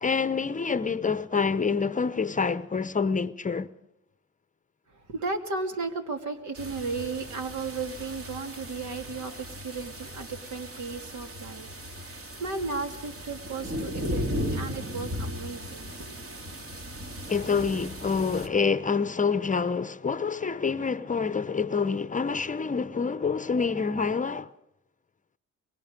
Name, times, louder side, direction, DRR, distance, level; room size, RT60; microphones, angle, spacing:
voice 1, 0.0-3.7 17.3-24.5, left 5 dB, 25° left, 0.7 m, -27 dB
voice 2, 4.9-16.2, right 4 dB, 70° right, 2.8 m, -35 dB
sound 1, 6.6-18.5, equal, 45° right, 3.1 m, -37 dB
25.5 x 23.5 x 5.2 m
cardioid pair, 90°, 30 cm